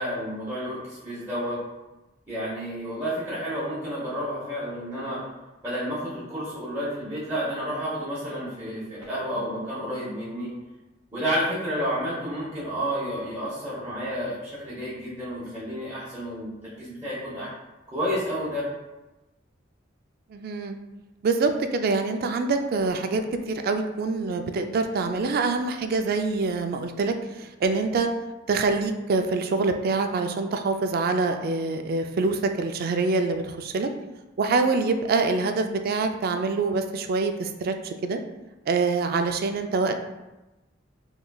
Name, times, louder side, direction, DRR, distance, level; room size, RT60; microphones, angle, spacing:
voice 1, 0.0-1.6 2.3-5.2 5.6-10.5 11.1-17.5 17.9-18.6, equal, 15° right, -10 dB, 0.9 m, -30 dB
voice 2, 20.3-20.8 21.2-28.1 28.5-33.9 34.4-38.2 38.7-40.0, right 3 dB, 50° right, 6 dB, 0.3 m, -25 dB
3.8 x 3.1 x 2.3 m, 1.1 s
head